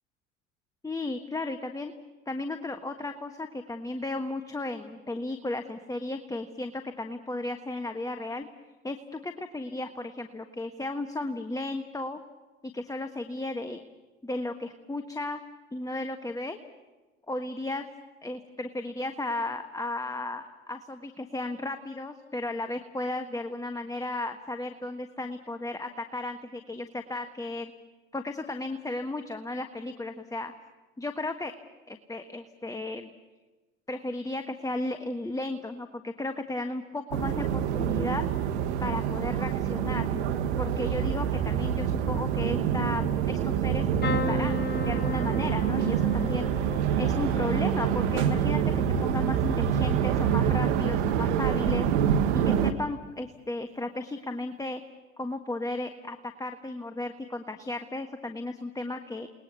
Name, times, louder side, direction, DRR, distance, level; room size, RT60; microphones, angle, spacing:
voice 1, 0.8-1.9 2.3-8.5 8.8-12.2 12.7-13.8 14.2-15.4 15.7-16.6 17.3-17.8 18.2-27.7 28.1-30.5 31.0-31.5 31.9-33.1 33.9-38.2 38.8-40.1 40.6-46.5 47.0-51.9 52.5-54.8 55.2-59.3, left 2 dB, 10° left, 6 dB, 1.5 m, -34 dB
sound 1, 37.1-52.7, right 8 dB, 75° right, 1.6 m, -26 dB
sound 2, 44.0-51.9 52.3-52.8 54.1-54.3 54.5-54.6, left 4 dB, 30° left, 1.5 m, -38 dB
29.5 x 20.5 x 6.9 m, 1.2 s
hypercardioid pair, 75°, 34 cm